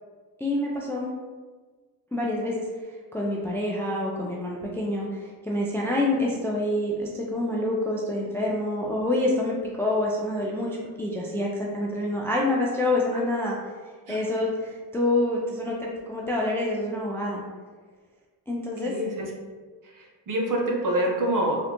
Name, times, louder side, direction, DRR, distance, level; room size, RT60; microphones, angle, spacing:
voice 1, 0.4-1.1 2.1-2.6 3.1-13.6 14.1-17.4 18.5-18.9, left 1 dB, 5° left, -3 dB, 0.3 m, -27 dB
voice 2, 18.9-19.3 20.0-21.6, right 1 dB, 45° right, 0 dB, 0.8 m, -26 dB
3.2 x 2.5 x 2.9 m, 1.4 s
cardioid pair, 80°, 43 cm